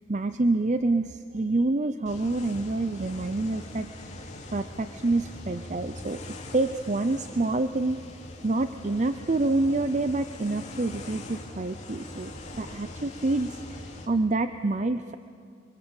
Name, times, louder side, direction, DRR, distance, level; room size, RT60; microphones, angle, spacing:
voice 1, 0.1-3.9 4.5-6.2 6.5-8.0 8.4-15.1, right 2 dB, 35° right, 10 dB, 0.5 m, -27 dB
sound 1, 2.1-14.1, left 1 dB, 35° left, 2.7 m, -42 dB
29.5 x 23.0 x 7.2 m, 2.3 s
head